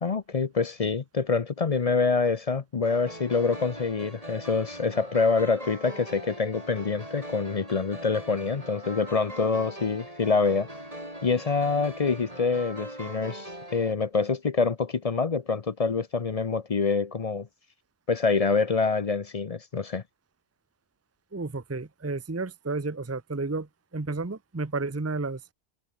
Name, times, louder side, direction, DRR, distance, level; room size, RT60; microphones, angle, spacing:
voice 1, 0.0-10.7 11.2-17.5 18.1-20.0, left 4 dB, 40° left, 0.8 m, -26 dB
sound 1, 2.9-13.9, right 1 dB, 35° right, 7.7 m, -41 dB
voice 2, 21.3-23.7 23.9-25.4, right 3 dB, 15° right, 0.8 m, -31 dB
omnidirectional pair, 1.0 m